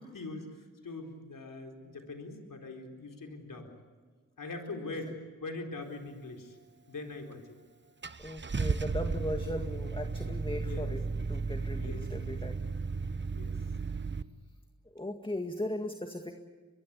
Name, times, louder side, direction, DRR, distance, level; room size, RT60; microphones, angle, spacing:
voice 1, 0.0-3.7 4.4-6.6 6.9-7.6 10.6-11.3 11.7-12.4 13.2-13.5, left 2 dB, 70° left, 3 dB, 4.1 m, -43 dB
Car / Engine starting, 7.3-7.4 8.0-14.2, right 4 dB, 35° right, 1.0 m, -34 dB
voice 2, 8.2-11.0 11.3-12.5 14.9-16.4, left 1 dB, 15° left, 6 dB, 1.9 m, -38 dB
23.5 x 21.0 x 8.5 m, 1.5 s
cardioid pair, 40°, 34 cm